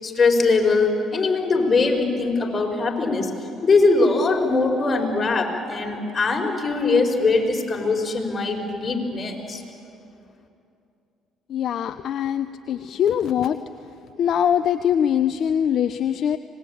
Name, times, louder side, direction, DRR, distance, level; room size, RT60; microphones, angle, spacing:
voice 1, 0.0-3.3 3.6-9.6, left 3 dB, 35° left, 2 dB, 4.9 m, -21 dB
voice 2, 11.5-13.6 14.2-16.4, left 9 dB, 60° left, 11 dB, 0.7 m, -22 dB
25.5 x 20.0 x 8.7 m, 2.6 s
supercardioid pair, 65°, 0 cm